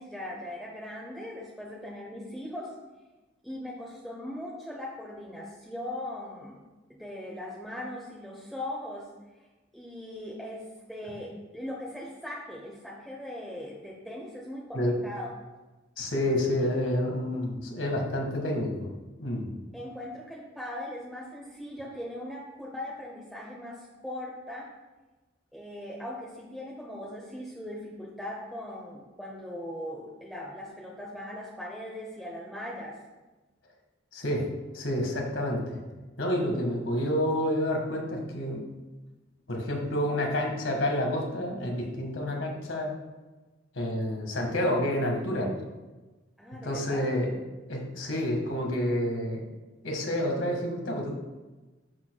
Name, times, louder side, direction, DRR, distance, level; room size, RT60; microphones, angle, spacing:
voice 1, 0.0-2.8 3.4-6.6 6.9-9.1 9.7-15.3 19.7-24.7 25.5-33.0 46.4-47.1, left 1 dB, ahead, -3 dB, 0.9 m, -39 dB
voice 2, 16.0-18.9 19.2-19.5 34.1-34.5 34.7-35.8 36.2-38.6 39.5-43.0 43.8-45.5 46.6-47.3 47.7-49.4 49.8-51.1, left 1 dB, 90° left, 1 dB, 1.8 m, -29 dB
11.0 x 6.9 x 2.3 m, 1.2 s
head